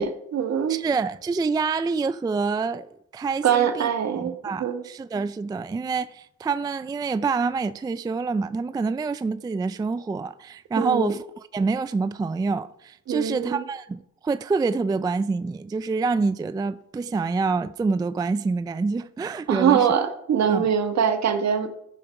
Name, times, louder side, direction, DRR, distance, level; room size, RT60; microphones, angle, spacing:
voice 1, 0.0-0.8 3.4-4.8 10.7-11.1 13.1-13.6 19.5-21.7, right 8 dB, 60° right, 1.3 m, -23 dB
voice 2, 0.7-3.9 4.2-11.2 11.5-19.9 20.5-20.7, right 4 dB, 15° right, 0.3 m, -26 dB
14.5 x 5.2 x 5.8 m
cardioid pair, 90°, 30 cm